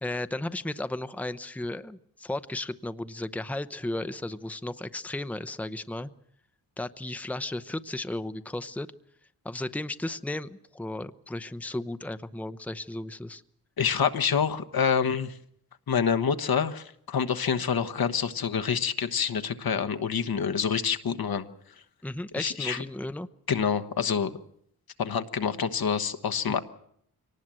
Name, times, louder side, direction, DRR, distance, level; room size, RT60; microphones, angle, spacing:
voice 1, 0.0-6.1 6.8-8.9 9.4-13.4 22.0-23.3 26.5-26.6, left 1 dB, 5° left, 12 dB, 0.8 m, -34 dB
voice 2, 13.8-15.3 15.9-21.4 22.4-22.8 23.5-24.3 25.0-26.6, left 7 dB, 65° left, 9 dB, 1.3 m, -27 dB
23.5 x 19.0 x 7.6 m, 0.70 s
cardioid pair, 60°, 38 cm